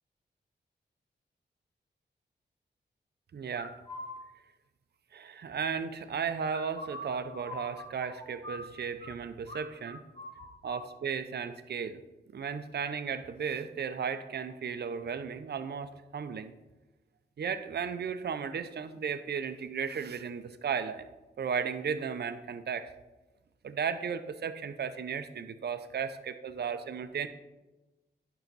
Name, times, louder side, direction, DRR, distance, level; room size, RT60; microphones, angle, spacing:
voice 1, 3.3-3.8 5.1-10.0 10.6-12.0 12.3-16.5 17.4-21.1 21.4-22.9 23.6-27.3, right 6 dB, 65° right, 10 dB, 0.7 m, -35 dB
sound 1, 3.5-4.1 6.4-9.1 9.5-9.6 9.9-10.8, left 1 dB, 30° left, 1.9 m, -43 dB
10.5 x 5.7 x 4.1 m, 1.1 s
wide cardioid pair, 85°, 18 cm